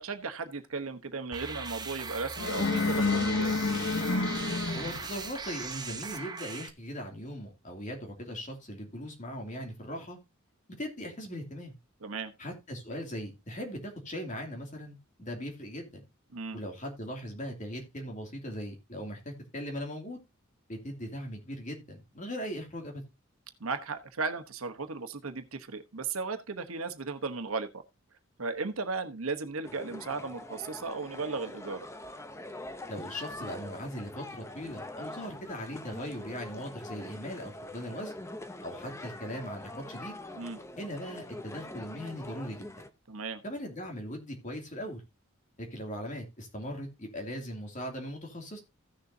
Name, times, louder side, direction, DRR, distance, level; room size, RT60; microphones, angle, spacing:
voice 1, 0.0-3.6 12.0-12.3 16.3-16.6 23.6-27.8 28.4-31.9 40.3-40.6 43.1-43.4, right 4 dB, 90° right, 1.1 m, -36 dB
sound 1, 1.3-6.7, right 4 dB, 20° right, 0.9 m, -39 dB
sound 2, 2.4-5.3, left 3 dB, 60° left, 1.0 m, -29 dB
voice 2, 4.7-10.2 10.8-11.7 12.4-16.0 16.5-20.2 20.7-23.0 32.9-38.1 38.6-40.2 40.8-42.8 43.4-45.0 45.6-48.6, equal, 35° left, 2.6 m, -39 dB
sound 3, 29.6-42.9, left 1 dB, 15° left, 0.7 m, -44 dB
15.5 x 6.8 x 2.7 m
head